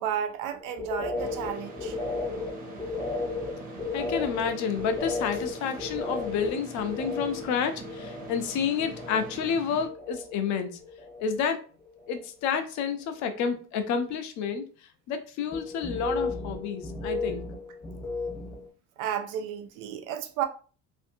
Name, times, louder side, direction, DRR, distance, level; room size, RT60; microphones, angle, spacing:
voice 1, 0.0-2.0 19.0-20.5, right 9 dB, 75° right, 0.5 m, -32 dB
sound 1, 0.6-9.5 9.8-10.5 10.8-11.5 11.8-12.2 15.5-18.7, left 3 dB, 10° left, 0.7 m, -35 dB
sound 2, 1.2-9.9, right 3 dB, 30° right, 0.5 m, -43 dB
voice 2, 3.9-10.8 11.2-11.6 12.1-14.6 15.1-17.5, left 6 dB, 65° left, 0.6 m, -30 dB
2.6 x 2.5 x 2.6 m
cardioid pair, 155°, 31 cm